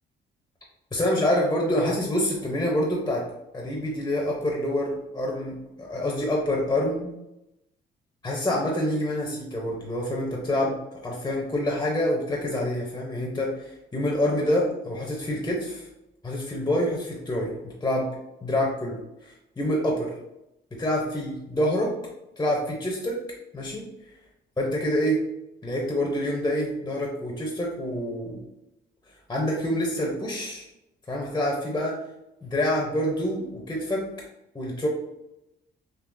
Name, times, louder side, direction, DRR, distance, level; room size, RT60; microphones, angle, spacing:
voice 1, 0.9-3.3 3.5-7.1 8.2-15.9 16.2-18.1 18.4-20.1 20.7-21.9 22.4-23.2 23.5-23.9 24.6-25.2 25.6-28.4 29.3-30.7 31.1-32.0 32.4-34.1 34.5-34.9, left 1 dB, 15° left, -1 dB, 0.7 m, -27 dB
3.6 x 2.6 x 2.6 m, 0.91 s
cardioid pair, 90°, 20 cm